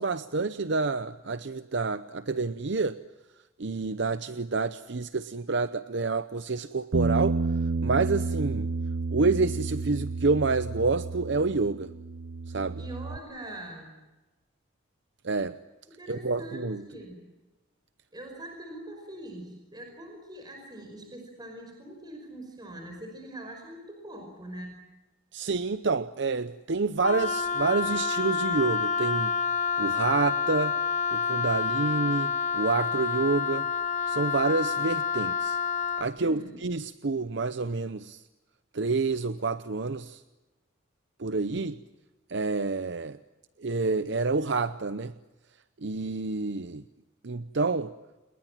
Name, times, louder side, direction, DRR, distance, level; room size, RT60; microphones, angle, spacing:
voice 1, 0.0-2.9 3.6-7.4 7.8-8.7 9.1-11.9 12.5-12.8 15.2-15.6 16.1-16.8 25.3-29.3 29.8-30.7 31.1-33.7 34.1-35.6 36.0-38.2 38.7-40.2 41.2-41.8 42.3-43.2 43.6-45.1 45.8-46.8 47.2-47.9, right 3 dB, 60° right, 12 dB, 0.7 m, -28 dB
Bass guitar, 6.9-13.2, right 3 dB, 85° right, 0.8 m, -30 dB
voice 2, 12.8-13.9 15.9-17.2 18.1-24.8 36.2-36.6, right 1 dB, 20° right, 3 dB, 5.2 m, -43 dB
Wind instrument woodwind instrument, 27.0-36.1, left 6 dB, 35° left, 0.9 m, -28 dB
30.0 x 20.0 x 7.4 m, 1.1 s
head